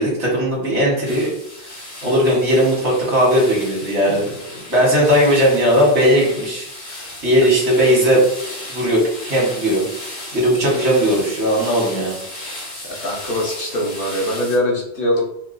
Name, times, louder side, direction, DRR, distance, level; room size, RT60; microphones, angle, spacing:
voice 1, 0.0-1.3 2.0-4.3 4.7-6.7 7.2-8.2 8.7-9.9 10.3-12.2, equal, 85° right, -3 dB, 1.7 m, -17 dB
sound 1, 1.1-14.6, left 1 dB, 70° left, 1.4 m, -35 dB
voice 2, 13.0-15.3, left 1 dB, 55° left, -3 dB, 1.1 m, -22 dB
4.6 x 2.3 x 2.6 m, 0.78 s
omnidirectional pair, 1.1 m